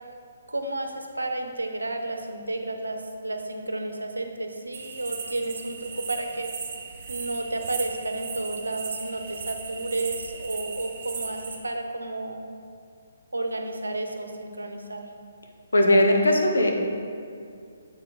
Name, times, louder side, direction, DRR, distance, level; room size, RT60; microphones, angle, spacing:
voice 1, 0.5-6.5 7.1-12.5 13.3-15.1, right 2 dB, 90° right, 5 dB, 0.7 m, -32 dB
sound 1, 4.7-11.6, right 5 dB, 45° right, 0.9 m, -37 dB
voice 2, 15.7-16.7, left 1 dB, 80° left, 2 dB, 0.9 m, -19 dB
7.4 x 4.4 x 3.9 m, 2.4 s
figure-of-eight pair, 140°, 0 cm